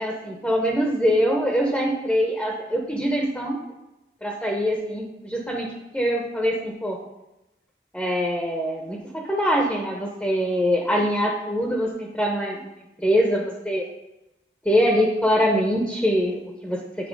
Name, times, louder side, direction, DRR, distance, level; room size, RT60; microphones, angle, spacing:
voice 1, 0.0-3.6 4.2-5.7 5.9-7.0 7.9-12.6 13.0-13.8 14.6-17.1, equal, 5° left, -1 dB, 0.8 m, -23 dB
8.4 x 4.1 x 5.3 m, 0.96 s
head